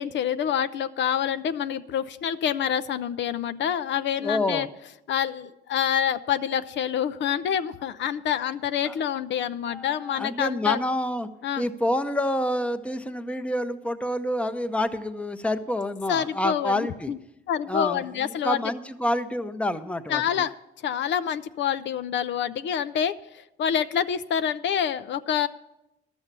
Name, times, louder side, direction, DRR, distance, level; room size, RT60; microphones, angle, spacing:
voice 1, 0.0-4.7 5.1-10.8 11.4-11.6 16.1-17.2 17.5-18.6 20.1-20.5 20.8-25.5, left 9 dB, 65° left, 12 dB, 0.5 m, -27 dB
voice 2, 4.2-4.7 8.8-9.0 9.7-11.3 11.6-17.1 17.7-20.2, left 1 dB, 5° left, 9 dB, 0.7 m, -28 dB
12.0 x 7.1 x 6.7 m, 0.88 s
cardioid pair, 90°, 20 cm